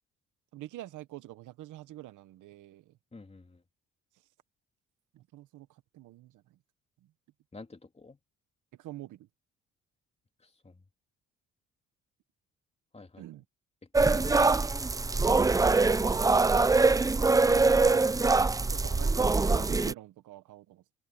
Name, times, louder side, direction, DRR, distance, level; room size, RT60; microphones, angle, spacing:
voice 1, 0.5-3.0 5.1-6.6 8.8-9.3 13.2-13.4 17.2-18.2 18.7-20.8, right 15 dB, 80° right, 1.0 m, -45 dB
voice 2, 3.1-3.6 7.5-8.2 10.4-10.8 12.9-13.2 14.0-14.5, left 3 dB, 20° left, 3.1 m, -49 dB
sound 1, 13.9-19.9, right 3 dB, 10° right, 0.4 m, -23 dB
cardioid pair, 90°, 30 cm